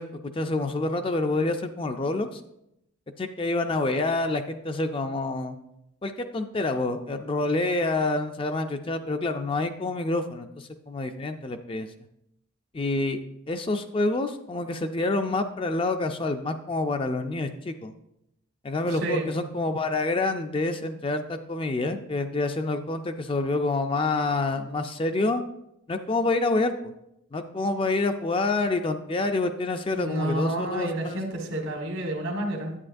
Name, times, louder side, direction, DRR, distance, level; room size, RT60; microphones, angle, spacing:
voice 1, 0.0-2.4 3.2-5.6 6.0-11.9 12.7-13.2 13.5-17.9 18.6-25.4 25.9-26.9 27.3-31.2, left 2 dB, 25° left, 7 dB, 0.4 m, -27 dB
voice 2, 18.9-19.3 29.9-32.8, right 1 dB, 80° right, 2 dB, 1.6 m, -30 dB
9.8 x 8.6 x 2.6 m, 0.81 s
head